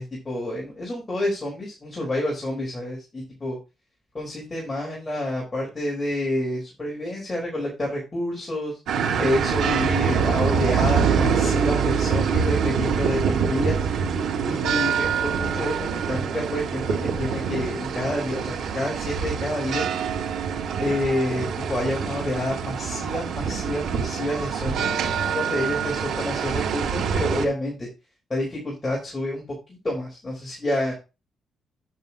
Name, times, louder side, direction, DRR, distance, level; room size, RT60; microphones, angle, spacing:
voice 1, 0.0-3.6 4.1-8.7 9.2-13.9 14.4-19.9 20.8-24.9 25.2-27.9 28.3-29.4 29.8-30.9, left 1 dB, 15° left, -3 dB, 4.1 m, -28 dB
sound 1, 8.9-27.5, right 6 dB, 80° right, 3.2 m, -25 dB
10.0 x 8.8 x 2.8 m, 0.28 s
cardioid pair, 175°, 0 cm